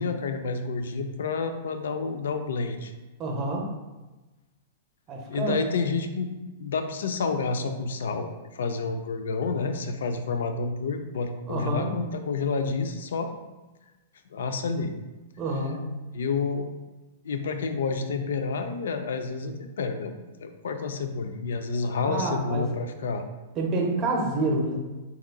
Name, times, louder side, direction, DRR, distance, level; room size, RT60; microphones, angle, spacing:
voice 1, 0.0-2.9 5.3-13.3 14.3-14.9 16.1-16.7 17.2-20.1 20.4-23.2, left 4 dB, 85° left, 7 dB, 0.3 m, -29 dB
voice 2, 3.2-3.7 5.1-5.6 11.5-11.9 15.4-15.8 22.0-22.7 23.6-24.8, right 2 dB, 30° right, 1 dB, 0.6 m, -28 dB
3.6 x 2.9 x 2.2 m, 1.1 s
hypercardioid pair, 145°, 0 cm